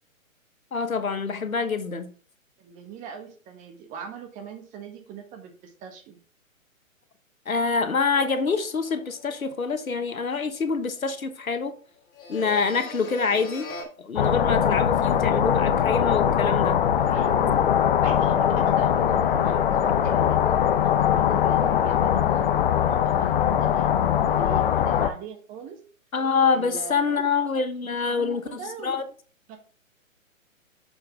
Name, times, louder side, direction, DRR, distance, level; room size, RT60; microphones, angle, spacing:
voice 1, 0.7-2.1 7.5-11.7 12.3-13.7 14.0-16.8 26.1-29.0, left 5 dB, 90° left, 1.2 m, -26 dB
voice 2, 2.6-6.2 17.0-17.7 18.0-22.5 22.8-25.8 26.5-27.3 28.1-29.0 29.5-29.6, right 7 dB, 20° right, 1.3 m, -41 dB
sound 1, 8.1-11.6 12.0-13.8, left 3 dB, 25° left, 1.7 m, -42 dB
sound 2, 14.2-25.1, left 9 dB, 45° left, 0.6 m, -21 dB
6.8 x 5.3 x 3.4 m
figure-of-eight pair, 130°, 41 cm